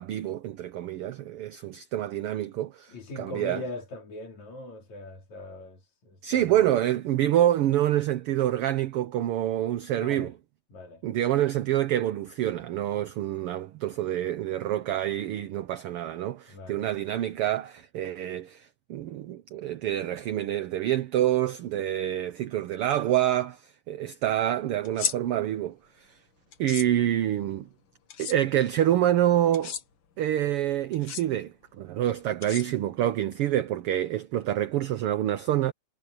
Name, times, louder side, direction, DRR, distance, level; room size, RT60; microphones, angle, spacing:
voice 1, 0.0-3.6 6.2-10.3 11.0-25.7 26.6-27.7 28.2-29.8 30.2-35.7, right 12 dB, 70° right, 1.5 m, -27 dB
voice 2, 2.9-6.6 10.0-10.3 10.7-11.0 16.5-16.9, left 2 dB, 70° left, 5.2 m, -41 dB
sound 1, 24.8-25.2 26.5-26.9 28.1-28.4 29.5-29.8 30.9-31.2 32.4-33.0, left 7 dB, 50° left, 1.8 m, -33 dB
omnidirectional pair, 3.3 m